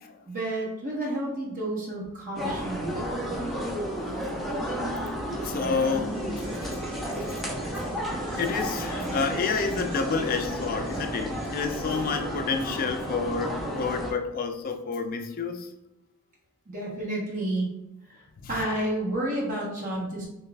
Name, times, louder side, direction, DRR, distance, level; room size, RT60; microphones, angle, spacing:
voice 1, 0.3-2.9 16.7-17.7 18.1-20.2, right 1 dB, 35° right, 1.1 m, -30 dB
sound 1, 2.3-14.1, equal, ahead, 0.7 m, -32 dB
voice 2, 5.4-6.7 7.1-7.4 7.7-7.8 8.4-15.7 18.4-18.5, left 5 dB, 40° left, 0.4 m, -29 dB
sound 2, 5.9-14.3 14.6-14.7, right 1 dB, 20° right, 1.4 m, -46 dB
5.6 x 2.3 x 2.4 m
head